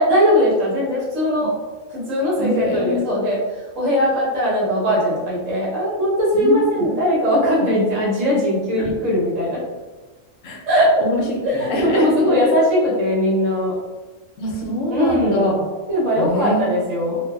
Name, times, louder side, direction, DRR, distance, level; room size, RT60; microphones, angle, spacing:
voice 1, 0.0-1.5 1.9-3.4 3.7-9.6 10.7-10.9 11.4-13.7 14.9-15.4 15.9-17.2, equal, 80° right, -6 dB, 1.4 m, -19 dB
voice 2, 2.4-3.2 6.3-6.9 8.8-8.9 10.4-10.6 11.0-12.4 14.4-15.8 16.2-16.8, equal, 80° left, 0 dB, 1.0 m, -24 dB
3.1 x 2.1 x 2.2 m, 1.2 s
omnidirectional pair, 1.3 m